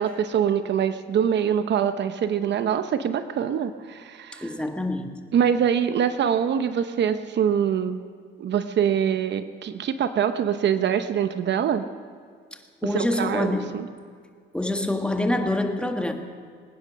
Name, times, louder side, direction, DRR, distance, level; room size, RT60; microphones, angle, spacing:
voice 1, 0.0-4.5 5.3-8.0 8.4-11.9 12.9-13.9, right 8 dB, 60° right, 10 dB, 0.8 m, -24 dB
voice 2, 4.4-5.2 12.8-13.8 14.5-16.1, left 1 dB, 5° left, 4 dB, 1.6 m, -26 dB
22.0 x 9.9 x 6.5 m, 2.1 s
cardioid pair, 90°, 20 cm